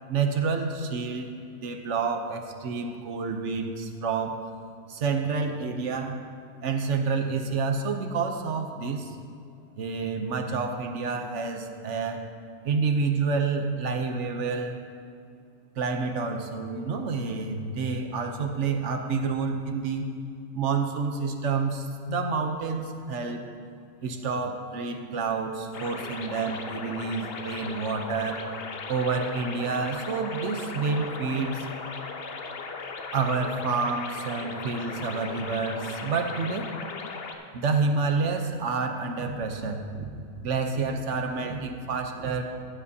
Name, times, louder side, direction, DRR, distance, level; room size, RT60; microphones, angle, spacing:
voice 1, 0.1-1.3 1.6-4.4 4.9-6.3 6.6-9.1 9.8-12.2 12.6-14.8 15.8-20.1 20.5-23.4 24.0-28.4 28.9-31.7 33.1-36.7 37.5-40.2 40.4-42.4, right 4 dB, 60° right, 5 dB, 1.1 m, -28 dB
sound 1, 25.7-37.4, left 4 dB, 50° left, 0.9 m, -37 dB
14.5 x 9.5 x 2.8 m, 2.4 s
omnidirectional pair, 1.4 m